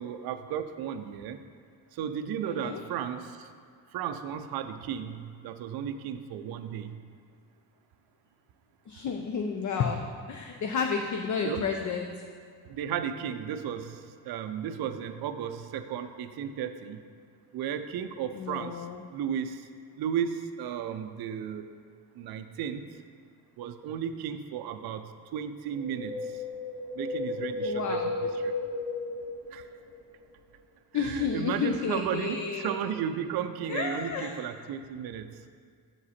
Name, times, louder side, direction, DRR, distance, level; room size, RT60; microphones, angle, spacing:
voice 1, 0.0-1.4 1.9-3.5 3.9-7.1 11.4-11.7 12.7-17.0 17.5-18.9 19.1-19.7 20.0-21.7 22.1-22.9 23.6-26.4 26.9-28.6 29.5-29.7 30.9-35.4, right 8 dB, 55° right, 8 dB, 0.5 m, -34 dB
voice 2, 2.4-2.8 8.9-12.1 18.3-19.0 27.6-28.1 30.9-32.7 33.7-34.4, left 6 dB, 40° left, 3 dB, 0.5 m, -31 dB
Wind, 25.7-30.1 30.3-30.4, left 2 dB, ahead, 1.9 m, -34 dB
6.8 x 4.9 x 4.2 m, 2.1 s
cardioid pair, 85°, 45 cm